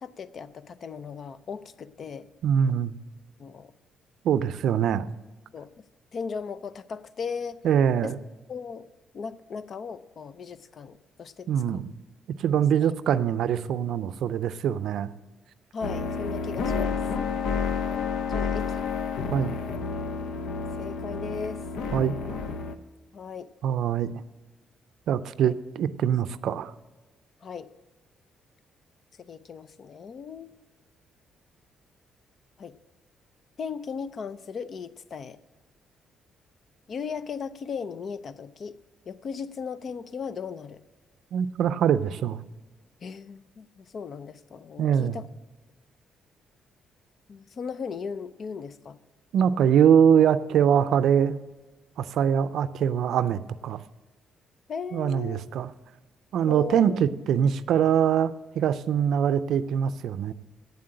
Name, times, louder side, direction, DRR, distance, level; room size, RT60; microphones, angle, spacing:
voice 1, 0.0-2.3 3.4-3.7 5.5-5.7 6.1-7.6 8.0-8.1 8.5-8.9 9.1-11.8 12.8-12.9 15.7-17.0 18.3-18.8 20.8-21.6 23.1-23.5 25.4-25.5 27.4-27.7 29.2-30.5 32.6-32.8 33.6-35.4 36.9-38.8 39.1-40.8 43.0-45.3 47.3-49.0 54.7-55.4 56.4-57.0, left 5 dB, 50° left, 14 dB, 0.5 m, -37 dB
voice 2, 2.4-3.0 4.2-5.1 7.6-8.2 11.5-11.9 12.4-15.1 19.3-19.6 21.9-22.1 23.6-24.1 25.1-26.7 41.3-42.4 44.8-45.2 49.3-51.4 52.0-53.8 54.9-55.7 56.3-60.3, right 8 dB, 75° right, 15 dB, 0.4 m, -23 dB
sound 1, 15.8-22.8, left 5 dB, 80° left, 0.8 m, -30 dB
8.5 x 7.6 x 8.8 m, 1.2 s
cardioid pair, 90°, 0 cm